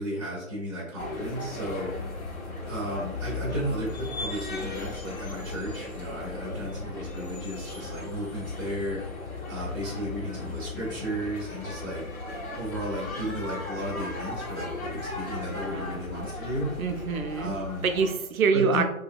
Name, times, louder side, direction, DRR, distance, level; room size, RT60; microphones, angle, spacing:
voice 1, 0.0-1.9 2.7-9.0 9.5-12.0 12.6-16.7 17.4-17.8 18.5-18.8, equal, 15° right, -7 dB, 0.4 m, -33 dB
sound 1, 1.0-18.1, left 3 dB, 80° left, 1.1 m, -37 dB
voice 2, 15.7-16.0 16.8-17.6 17.8-18.8, right 5 dB, 85° right, 7 dB, 0.6 m, -25 dB
2.8 x 2.7 x 2.4 m, 0.87 s
figure-of-eight pair, 135°, 41 cm